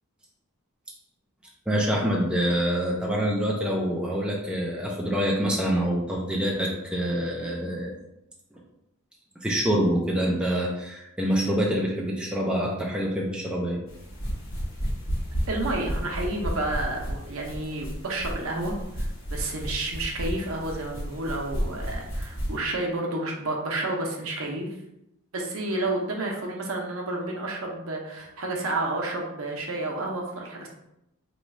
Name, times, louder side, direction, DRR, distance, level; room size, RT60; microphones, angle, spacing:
voice 1, 1.7-7.9 9.4-13.8, equal, 5° right, -3 dB, 0.5 m, -26 dB
sound 1, 13.9-22.6, equal, 65° left, 1.2 m, -32 dB
voice 2, 15.5-24.7 25.3-30.7, right 2 dB, 75° right, 0 dB, 0.7 m, -30 dB
3.1 x 2.4 x 4.1 m, 0.86 s
head